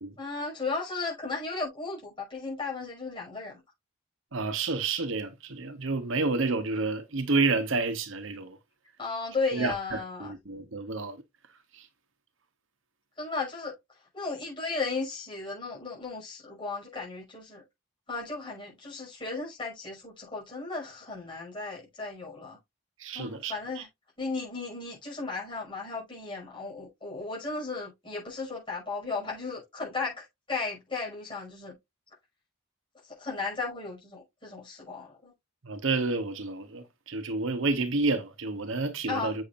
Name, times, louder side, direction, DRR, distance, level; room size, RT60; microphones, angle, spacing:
voice 1, 0.2-3.6 9.0-10.3 13.2-17.6 18.1-22.6 23.1-23.9 24.2-31.7 33.0-35.3 39.1-39.4, left 3 dB, 25° left, 5.7 m, -35 dB
voice 2, 4.3-8.6 9.5-11.2 23.0-23.5 35.6-39.3, right 3 dB, 70° right, 0.9 m, -29 dB
8.4 x 6.2 x 2.5 m
head